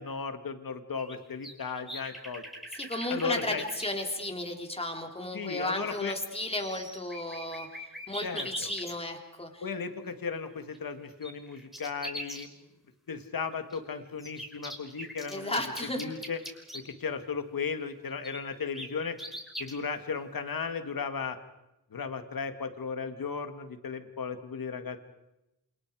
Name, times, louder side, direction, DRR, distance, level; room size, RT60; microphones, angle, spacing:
voice 1, 0.0-2.4 3.1-3.6 5.3-6.2 8.2-8.7 9.6-12.5 13.1-15.6 16.0-16.4 16.7-19.2 19.6-21.4 21.9-25.0, left 5 dB, 65° left, 8 dB, 2.3 m, -35 dB
sound 1, 1.0-3.9 5.6-5.7 5.9-6.3 6.6-8.9 10.7-12.4 13.7-16.8 18.2-19.7, equal, ahead, 5.6 m, -41 dB
voice 2, 2.7-7.7 8.1-9.6 15.3-16.1, left 1 dB, 15° left, 3 dB, 3.8 m, -34 dB
28.5 x 28.0 x 5.0 m, 0.92 s
wide cardioid pair, 100°, 37 cm